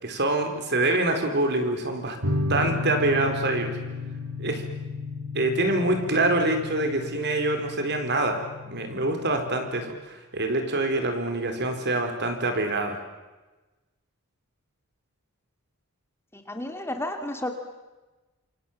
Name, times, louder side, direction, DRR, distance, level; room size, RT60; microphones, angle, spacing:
voice 1, 0.0-2.2 2.5-3.7 4.4-4.6 5.3-8.4 8.6-13.0, right 2 dB, 50° right, 5 dB, 4.5 m, -25 dB
sound 1, 2.2-9.9, left 3 dB, 75° right, 3.0 m, -33 dB
voice 2, 16.3-17.5, left 1 dB, 10° left, 5 dB, 2.3 m, -32 dB
28.0 x 27.0 x 7.5 m, 1.2 s
head